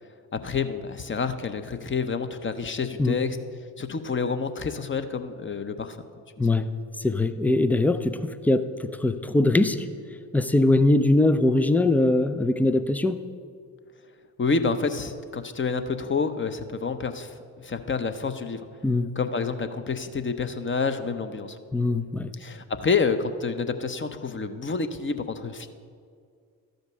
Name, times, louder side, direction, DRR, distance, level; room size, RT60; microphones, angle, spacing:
voice 1, 0.3-3.4 3.8-6.0 14.4-18.6 19.2-21.6 22.4-25.7, left 5 dB, 25° left, 9 dB, 0.7 m, -28 dB
voice 2, 6.4-6.7 7.0-9.9 10.3-13.2 18.8-19.1 21.7-22.3, left 2 dB, 5° left, 11 dB, 0.3 m, -22 dB
13.0 x 5.2 x 6.2 m, 2.2 s
figure-of-eight pair, 40°, 49 cm